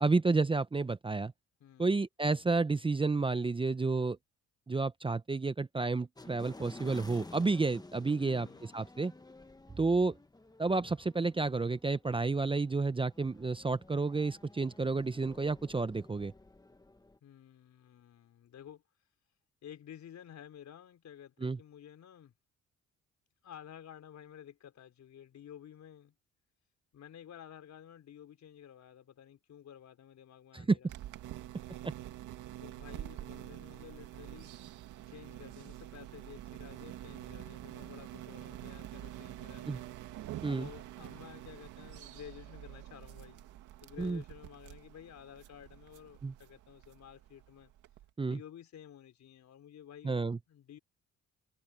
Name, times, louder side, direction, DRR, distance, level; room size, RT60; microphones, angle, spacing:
voice 1, 0.0-1.3 1.8-4.2 4.7-8.5 8.7-9.1 9.8-10.2 10.6-16.3 21.4-21.6 30.5-30.8 31.8-31.9 39.7-39.8 40.4-40.7 44.0-44.2 46.2-46.3 48.2-48.4 50.0-50.4, right 3 dB, 15° right, 0.7 m, -30 dB
voice 2, 1.6-2.0 8.2-8.9 17.2-18.8 19.6-22.3 23.4-26.1 26.9-30.9 32.6-34.6 35.1-39.9 40.4-43.5 43.8-47.7 48.2-50.2 50.5-50.8, left 9 dB, 65° left, 4.5 m, -52 dB
sound 1, 6.2-17.2, left 2 dB, 15° left, 1.4 m, -53 dB
sound 2, 30.9-48.1, right 13 dB, 90° right, 2.3 m, -47 dB
cardioid pair, 90°, 30 cm